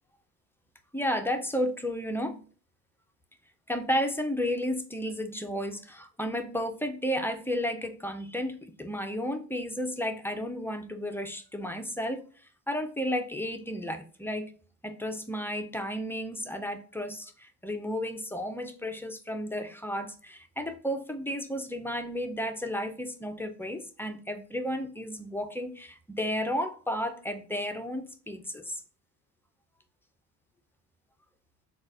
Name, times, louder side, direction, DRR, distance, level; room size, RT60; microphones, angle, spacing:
voice 1, 0.9-2.4 3.7-12.2 12.7-14.5 14.8-28.8, equal, 5° left, 0.4 m, -33 dB
3.9 x 2.3 x 2.4 m
cardioid pair, 105°, 39 cm